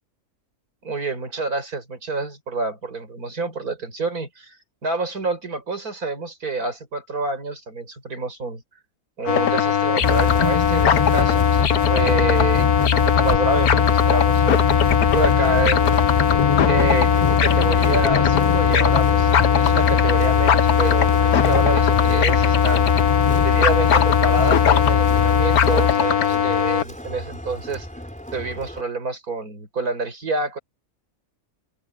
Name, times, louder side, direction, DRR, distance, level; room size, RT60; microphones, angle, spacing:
voice 1, 0.8-4.6 4.8-8.6 9.2-16.0 16.6-22.9 23.4-27.9 28.3-30.6, right 3 dB, 80° right, 5.5 m, -27 dB
sound 1, 9.3-26.8, left 9 dB, 85° left, 1.6 m, -20 dB
sound 2, 10.0-25.9, left 6 dB, 30° left, 0.9 m, -21 dB
Crowd, 17.1-28.8, equal, 5° left, 4.1 m, -37 dB
open air
omnidirectional pair, 1.5 m